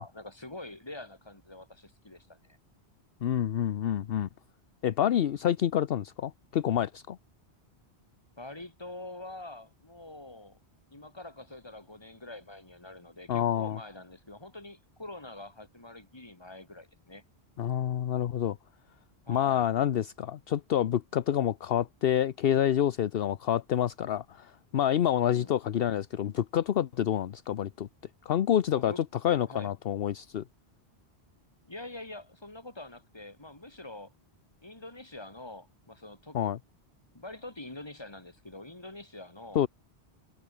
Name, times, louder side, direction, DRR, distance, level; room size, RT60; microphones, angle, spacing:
voice 1, 0.0-2.6 8.4-10.6 10.9-17.2 19.3-19.7 25.2-25.5 28.7-29.0 29.4-29.7 31.6-34.1 34.6-36.4 37.1-39.6, left 2 dB, 25° left, 2.5 m, -45 dB
voice 2, 3.2-4.3 4.8-7.2 13.3-13.8 17.6-18.6 19.3-27.9 28.3-30.4 36.3-36.6 39.5-39.7, left 10 dB, 65° left, 0.9 m, -28 dB
omnidirectional pair, 1.1 m